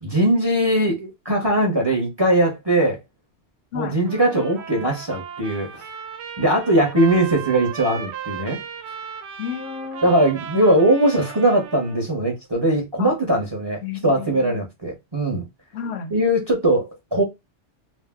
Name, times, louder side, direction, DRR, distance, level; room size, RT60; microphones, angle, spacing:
voice 1, 0.0-3.0 3.7-5.9 6.4-8.6 10.0-15.4 16.1-17.2, right 1 dB, 25° right, 0.6 m, -20 dB
Trumpet, 4.0-12.1, right 7 dB, 65° right, 0.8 m, -36 dB
voice 2, 9.4-10.1 13.0-13.1 13.8-14.6 15.7-16.1, left 7 dB, 80° left, 0.9 m, -32 dB
2.6 x 2.0 x 3.4 m
omnidirectional pair, 1.3 m